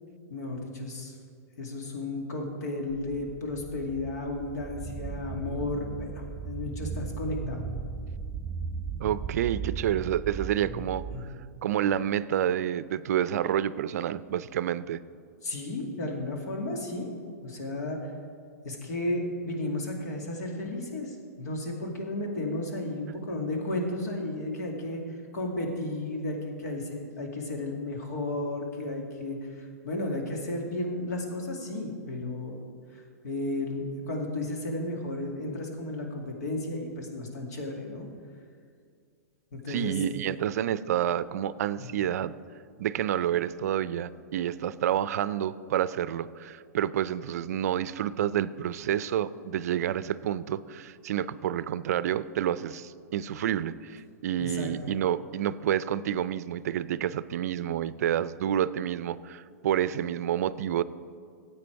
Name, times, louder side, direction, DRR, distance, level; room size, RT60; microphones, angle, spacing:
voice 1, 0.3-1.1 1.6-7.6 11.1-11.2 15.4-17.1 17.4-18.1 18.6-25.0 25.3-32.5 32.9-38.1 39.5-40.0 41.7-41.9 54.4-54.9, left 2 dB, 75° left, 1 dB, 2.3 m, -33 dB
sound 1, 2.9-11.2, right 5 dB, 10° right, 0.8 m, -37 dB
voice 2, 9.0-11.0 11.6-15.0 39.7-42.3 42.8-60.8, right 10 dB, 65° right, 16 dB, 0.4 m, -29 dB
13.5 x 8.3 x 4.6 m, 2.1 s
hypercardioid pair, 130°, 9 cm